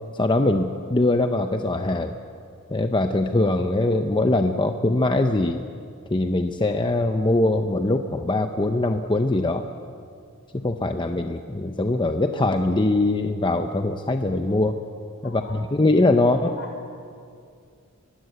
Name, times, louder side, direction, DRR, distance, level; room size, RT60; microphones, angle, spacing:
voice 1, 0.1-2.2 2.7-5.6 6.1-9.6 10.5-14.8 15.2-16.4, left 2 dB, 20° left, 6 dB, 0.8 m, -22 dB
voice 2, 15.2-15.7 16.2-17.0, left 2 dB, 60° left, 3 dB, 5.0 m, -42 dB
24.0 x 22.0 x 8.0 m, 2.3 s
head